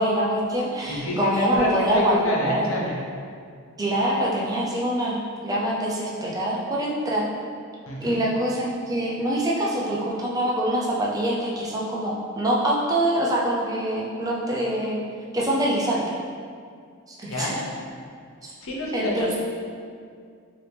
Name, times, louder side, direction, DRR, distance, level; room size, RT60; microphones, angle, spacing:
voice 1, 0.0-2.6 3.8-7.3 8.0-15.0 15.3-16.2 17.1-17.6 18.4-18.5 18.9-19.4, right 1 dB, 15° right, -4 dB, 0.5 m, -25 dB
voice 2, 0.9-3.0 7.9-8.2 17.3-17.6 18.6-19.4, left 1 dB, 60° left, -4 dB, 0.8 m, -27 dB
4.5 x 3.0 x 3.3 m, 2.2 s
head